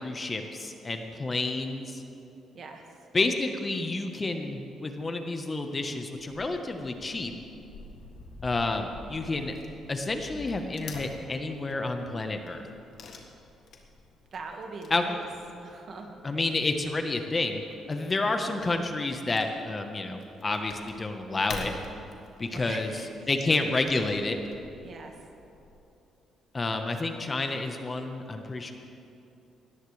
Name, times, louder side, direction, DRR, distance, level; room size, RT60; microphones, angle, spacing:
voice 1, 0.0-2.0 3.1-7.3 8.4-9.5 9.9-12.6 14.9-15.0 16.2-17.6 17.9-21.7 22.4-22.9 23.3-24.4 26.5-28.7, left 2 dB, 30° left, 5 dB, 1.2 m, -29 dB
Wood / Tearing, 6.2-25.8, left 3 dB, 65° left, 1.7 m, -48 dB
voice 2, 14.3-15.3 15.6-16.2 22.5-23.1 24.8-25.1, right 4 dB, 55° right, 3 dB, 1.8 m, -41 dB
19.5 x 14.0 x 3.4 m, 2.9 s
cardioid pair, 90°, 0 cm